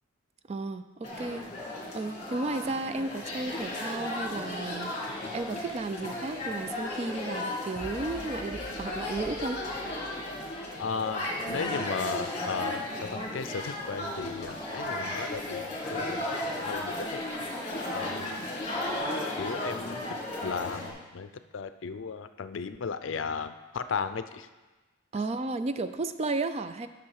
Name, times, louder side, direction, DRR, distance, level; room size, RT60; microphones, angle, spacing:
voice 1, 0.5-1.5 1.9-4.9 5.3-9.6 25.1-26.9, right 3 dB, 30° right, 11 dB, 0.4 m, -33 dB
sound 1, 1.0-20.9, left 1 dB, 35° left, 2.0 m, -35 dB
sound 2, 7.7-11.2, equal, 65° right, 3.6 m, -48 dB
voice 2, 10.8-17.3 17.9-18.4 19.4-20.1 20.4-24.5, left 5 dB, 70° left, 11 dB, 0.5 m, -35 dB
10.5 x 6.3 x 4.7 m, 1.2 s
head